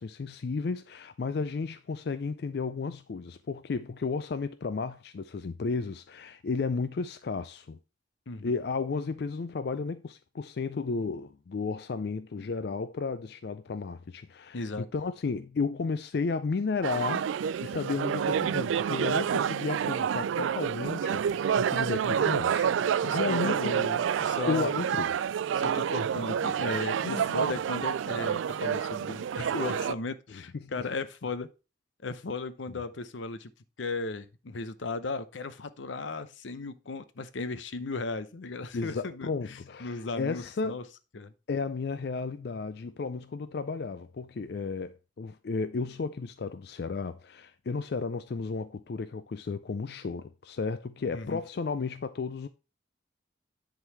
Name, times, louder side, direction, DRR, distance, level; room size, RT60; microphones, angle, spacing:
voice 1, 0.0-7.8 8.4-17.3 17.6-22.7 22.9-23.6 24.5-25.1 27.0-27.6 30.3-30.9 38.7-40.8 41.5-52.5, left 4 dB, 55° left, 0.4 m, -33 dB
voice 2, 14.5-14.9 23.0-24.7 25.5-31.5 32.0-33.5 33.8-40.8 41.1-41.3 51.1-51.4, left 3 dB, 85° left, 0.7 m, -36 dB
sound 1, 16.8-29.9, right 8 dB, 90° right, 0.3 m, -28 dB
9.8 x 3.9 x 4.5 m
head